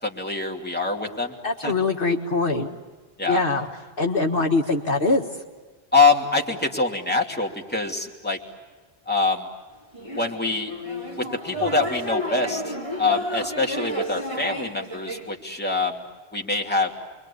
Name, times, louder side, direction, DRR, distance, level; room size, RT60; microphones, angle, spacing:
voice 1, 0.0-1.3 1.6-1.7 3.2-3.4 5.9-8.4 9.1-9.5 10.1-10.7 11.2-16.0 16.3-16.9, left 3 dB, 10° left, 0 dB, 2.8 m, -24 dB
voice 2, 1.4-2.7 3.3-3.7 4.0-5.2, left 3 dB, 55° left, 1 dB, 1.8 m, -22 dB
sound 1, 9.9-15.3, equal, 30° right, 4.9 m, -31 dB
29.5 x 23.0 x 8.6 m, 1.3 s
omnidirectional pair, 1.1 m